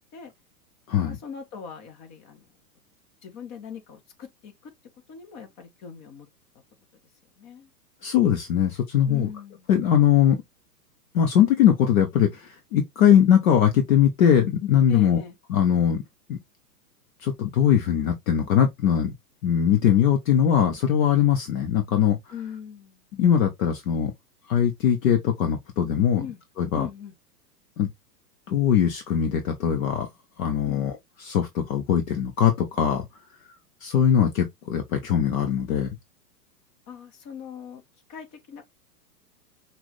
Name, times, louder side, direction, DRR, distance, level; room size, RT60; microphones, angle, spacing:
voice 1, 1.0-2.5 3.2-4.7 5.1-6.3 7.4-7.7 9.1-9.7 14.9-15.4 22.3-23.0 26.2-26.4 26.7-27.1 30.6-31.0 36.9-37.8 38.1-38.6, left 7 dB, 35° left, 1.6 m, -40 dB
voice 2, 8.0-9.3 9.7-10.4 11.1-15.2 15.5-16.0 16.3-16.4 17.2-19.1 19.4-22.2 23.2-24.1 24.5-26.2 26.6-26.9 27.8-27.9 28.5-30.1 30.4-30.9 31.2-33.1 33.8-35.9, left 9 dB, 55° left, 1.2 m, -21 dB
6.0 x 2.7 x 3.1 m
hypercardioid pair, 115°, 48 cm